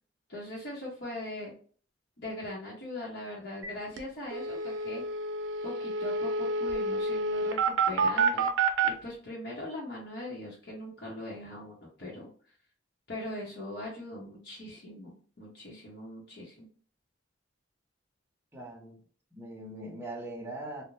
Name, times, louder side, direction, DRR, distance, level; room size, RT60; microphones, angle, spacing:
voice 1, 0.3-1.5 2.2-5.0 5.6-8.5 8.8-12.3 13.1-16.7, left 1 dB, 60° left, 0.9 m, -41 dB
sound 1, 3.6-3.7 4.0-4.1 4.3-8.9, right 4 dB, 90° right, 0.5 m, -28 dB
voice 2, 18.5-19.0 19.3-20.8, right 1 dB, 15° right, 0.7 m, -41 dB
2.5 x 2.1 x 3.0 m
head